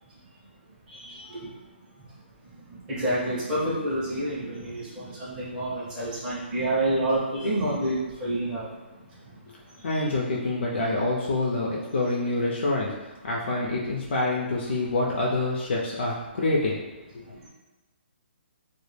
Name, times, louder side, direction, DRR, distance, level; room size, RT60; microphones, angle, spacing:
voice 1, 0.9-1.5 2.4-9.4 9.7-10.1 17.3-17.5, right 1 dB, 10° right, -10 dB, 0.4 m, -29 dB
voice 2, 9.8-16.8, left 2 dB, 65° left, -4 dB, 0.4 m, -26 dB
2.1 x 2.0 x 3.1 m, 1.2 s
hypercardioid pair, 170°, 6 cm